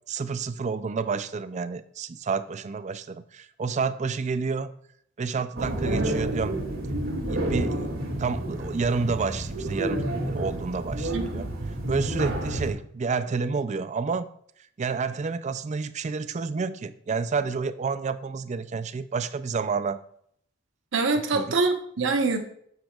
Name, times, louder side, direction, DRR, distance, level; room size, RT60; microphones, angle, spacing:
voice 1, 0.1-4.7 5.2-6.6 7.2-7.9 8.2-11.5 11.9-14.3 14.8-20.0 21.3-21.6, right 4 dB, 35° right, 0.4 m, -29 dB
sound 1, 5.6-12.7, right 1 dB, 85° right, 2.4 m, -29 dB
voice 2, 11.1-11.5 20.9-22.4, right 3 dB, 70° right, 1.0 m, -25 dB
8.8 x 7.4 x 2.4 m
head